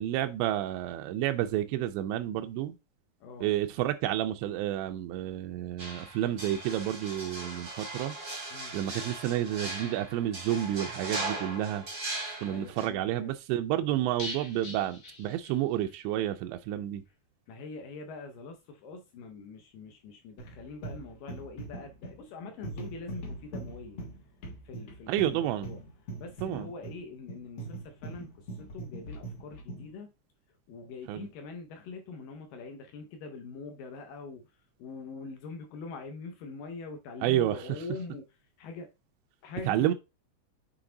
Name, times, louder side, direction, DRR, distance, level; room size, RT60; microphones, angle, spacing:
voice 1, 0.0-2.8 3.4-8.2 8.7-11.8 12.4-17.0 25.1-25.7 26.4-26.7 31.1-31.3 37.2-37.6 39.7-39.9, right 12 dB, 90° right, 2.8 m, -30 dB
voice 2, 3.2-3.5 8.5-8.8 12.5-13.3 13.8-13.9 17.5-24.0 24.6-25.8 26.2-30.1 30.7-34.5 34.8-38.9 39.4-39.9, left 4 dB, 75° left, 2.1 m, -44 dB
sound 1, 5.8-12.9, right 2 dB, 50° right, 0.9 m, -38 dB
sound 2, 14.2-16.0 16.2-16.3 16.7-16.8, left 1 dB, 40° left, 1.6 m, -43 dB
sound 3, 20.4-29.9, right 2 dB, 60° left, 1.8 m, -42 dB
7.0 x 3.9 x 3.8 m
omnidirectional pair, 5.0 m